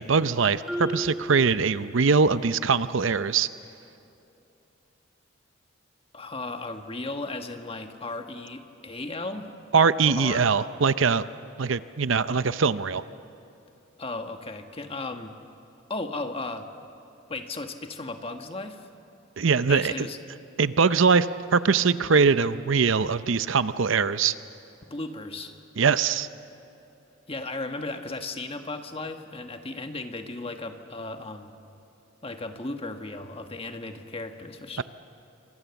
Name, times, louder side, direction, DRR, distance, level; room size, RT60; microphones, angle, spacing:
voice 1, 0.0-3.5 9.7-11.2 11.6-13.0 19.4-20.1 20.6-24.3 25.8-26.3 34.8-34.9, right 5 dB, 65° right, 14 dB, 0.6 m, -22 dB
Marimba xylophone, 0.7-2.4, equal, ahead, 2.2 m, -35 dB
voice 2, 6.1-9.5 10.0-10.4 14.0-15.4 15.9-16.7 17.3-18.9 19.7-20.2 24.8-25.6 27.3-31.6 32.2-34.8, left 2 dB, 25° left, 6 dB, 1.4 m, -35 dB
28.0 x 25.0 x 7.1 m, 2.9 s
head